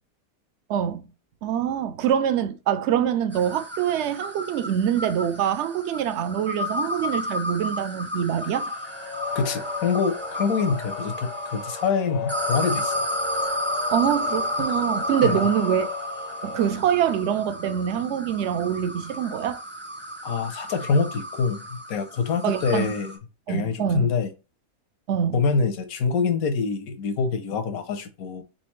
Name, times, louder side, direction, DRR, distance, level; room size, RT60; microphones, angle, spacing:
voice 1, 0.7-1.0 1.4-8.8 13.9-15.9 16.4-19.6 22.4-22.9 23.5-24.1 25.1-25.4, right 9 dB, 65° right, 0.7 m, -25 dB
sound 1, 3.3-11.9 12.3-23.2, equal, 10° right, 0.6 m, -32 dB
sound 2, 8.5-16.7, left 6 dB, 45° left, 0.5 m, -35 dB
voice 2, 9.3-13.0 14.6-14.7 15.2-15.5 20.2-23.2 23.5-24.3 25.3-28.4, left 5 dB, 85° left, 1.2 m, -25 dB
4.2 x 3.7 x 3.1 m
omnidirectional pair, 1.5 m